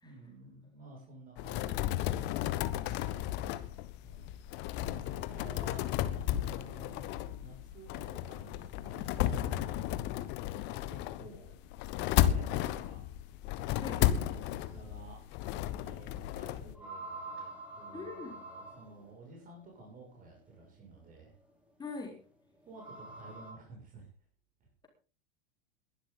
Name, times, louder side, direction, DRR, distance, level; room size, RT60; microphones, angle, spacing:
voice 1, 0.0-4.4 4.8-5.9 6.1-10.4 10.9-11.6 11.9-13.1 13.7-15.3 15.8-21.3 22.6-24.1 24.6-24.7, right 2 dB, 30° right, 0 dB, 6.2 m, -53 dB
sound 1, 1.4-16.7, left 13 dB, 35° left, 1.3 m, -33 dB
sound 2, 15.0-15.1 16.7-19.1 21.0-21.1 22.6-23.5, right 2 dB, 5° right, 6.0 m, -45 dB
voice 2, 17.9-18.4 21.8-22.2, left 4 dB, 15° left, 1 dB, 4.1 m, -42 dB
21.5 x 12.0 x 3.9 m, 0.36 s
figure-of-eight pair, 90°, 29 cm